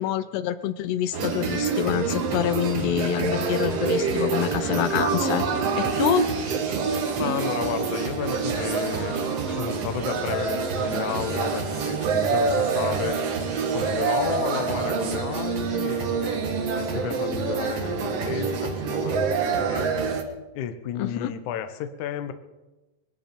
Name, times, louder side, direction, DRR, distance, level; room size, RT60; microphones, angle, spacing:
voice 1, 0.0-5.5 5.8-6.3 21.0-21.3, left 11 dB, 85° left, 13 dB, 2.9 m, -26 dB
sound 1, 1.1-20.2, right 5 dB, 60° right, 1.7 m, -26 dB
sound 2, 2.4-15.1, left 1 dB, 20° left, 7.5 m, -44 dB
voice 2, 7.2-9.1 9.6-13.2 13.7-19.9 20.5-22.3, left 9 dB, 70° left, 9 dB, 2.0 m, -32 dB
21.5 x 12.5 x 5.3 m, 1.1 s
omnidirectional pair, 4.8 m